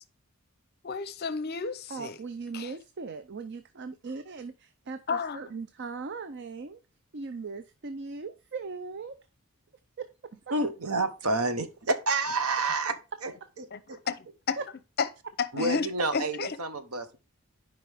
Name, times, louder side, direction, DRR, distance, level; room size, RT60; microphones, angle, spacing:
voice 1, 0.8-2.1 2.5-2.7 5.1-5.4 13.7-13.8 14.1-14.6 15.0-15.1 15.6-16.5, left 5 dB, 45° left, 0.6 m, -31 dB
voice 2, 1.9-6.8 7.1-9.2 10.0-10.3 14.6-14.7 16.0-16.1, right 4 dB, 50° right, 0.5 m, -39 dB
voice 3, 10.5-12.9 13.2-13.3 13.6-13.7 15.5-17.2, right 2 dB, 75° right, 1.0 m, -29 dB
11.0 x 5.2 x 3.4 m
head